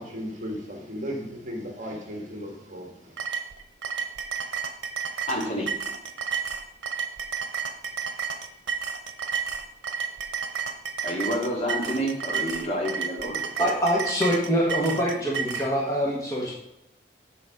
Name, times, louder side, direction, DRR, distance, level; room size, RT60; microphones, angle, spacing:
voice 1, 0.0-3.2, equal, 40° right, 1 dB, 1.6 m, -36 dB
sound 1, 3.2-15.7, right 6 dB, 85° right, 0.8 m, -31 dB
voice 2, 5.3-5.7 11.0-13.7, equal, 35° left, -3 dB, 2.2 m, -29 dB
voice 3, 13.6-16.5, equal, 20° left, -4 dB, 1.4 m, -24 dB
6.9 x 6.2 x 4.9 m, 0.81 s
head